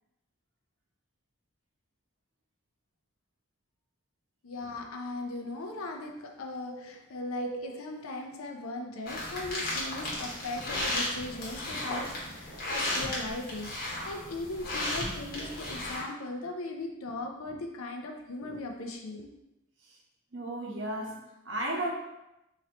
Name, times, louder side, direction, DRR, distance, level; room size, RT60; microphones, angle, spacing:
voice 1, 4.4-19.3, left 2 dB, 85° left, 3 dB, 0.5 m, -38 dB
sound 1, 9.1-16.0, left 1 dB, 45° left, 1.0 m, -34 dB
voice 2, 20.3-21.9, right 1 dB, 60° right, -1 dB, 0.8 m, -35 dB
3.0 x 2.7 x 4.2 m, 0.92 s
head